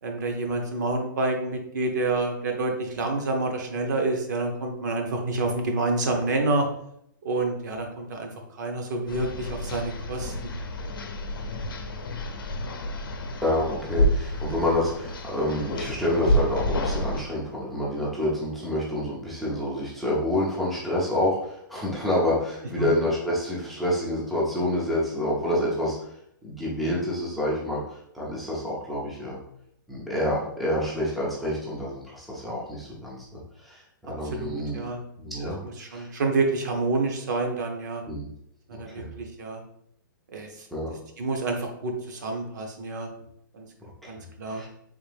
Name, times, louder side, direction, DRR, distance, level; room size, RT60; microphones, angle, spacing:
voice 1, 0.0-6.7 7.2-10.5 22.8-22.9 34.0-35.0 35.8-38.0 38.7-39.6 40.3-40.7 41.2-43.1 43.5-43.7 44.1-44.6, right 2 dB, 55° right, 3 dB, 0.8 m, -28 dB
sound 1, 9.1-17.2, equal, 85° left, 0.6 m, -29 dB
voice 2, 13.4-26.1 26.4-29.4 29.9-34.8 35.2-35.6 35.8-36.1 38.1-38.3 38.7-39.1 40.7-40.9 44.0-44.1 44.5-44.7, left 1 dB, ahead, -6 dB, 0.4 m, -28 dB
3.5 x 2.6 x 3.3 m, 0.72 s
hypercardioid pair, 165°, 11 cm